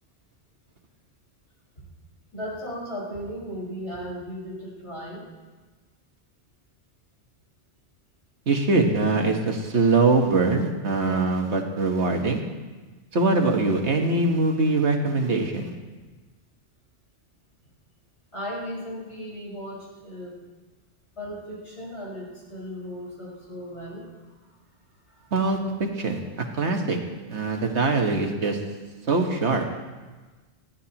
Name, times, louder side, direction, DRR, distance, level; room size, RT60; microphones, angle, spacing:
voice 1, 2.3-5.2 18.3-20.4 21.2-24.1 25.1-25.3, equal, 70° left, -5 dB, 5.2 m, -36 dB
voice 2, 8.5-12.4 13.1-15.7 25.3-27.0 27.3-28.6 29.1-29.6, right 3 dB, 70° right, 3 dB, 1.7 m, -23 dB
21.0 x 15.0 x 3.0 m, 1.3 s
omnidirectional pair, 1.2 m